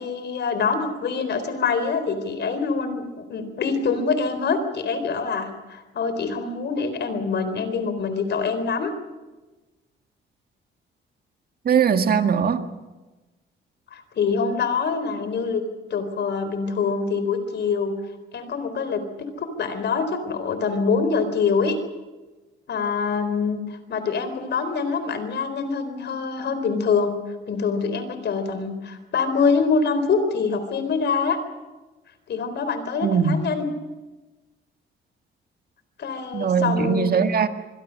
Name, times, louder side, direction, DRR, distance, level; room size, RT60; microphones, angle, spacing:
voice 1, 0.0-8.9 13.9-15.6 15.9-17.9 18.3-19.0 19.4-21.8 22.7-27.1 27.5-31.4 32.3-33.7 36.0-37.1, left 5 dB, 60° left, 10 dB, 4.2 m, -25 dB
voice 2, 11.7-12.6 33.0-33.4 36.3-37.5, right 6 dB, 50° right, 7 dB, 1.9 m, -20 dB
26.0 x 22.0 x 6.6 m, 1.2 s
cardioid pair, 90°, 20 cm